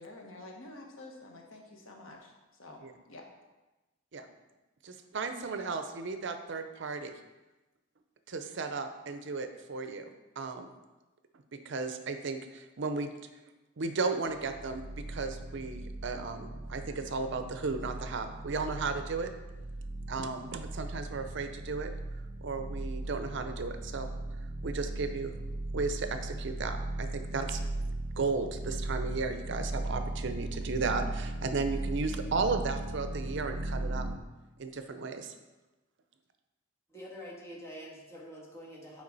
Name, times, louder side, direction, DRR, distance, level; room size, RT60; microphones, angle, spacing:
voice 1, 0.0-2.8 3.1-3.3, left 2 dB, 75° left, 1 dB, 1.3 m, -49 dB
voice 2, 4.8-7.1 8.3-10.1 10.4-10.7 11.7-13.1 13.8-19.3 20.1-21.9 22.4-24.1 24.6-25.3 25.7-27.6 28.2-34.1 34.6-35.4, right 4 dB, 60° right, 8 dB, 0.6 m, -35 dB
sound 1, 14.3-34.2, right 2 dB, 40° right, 0.9 m, -38 dB
voice 3, 36.9-39.0, equal, 15° left, -5 dB, 1.7 m, -46 dB
8.4 x 5.0 x 4.0 m, 1.1 s
head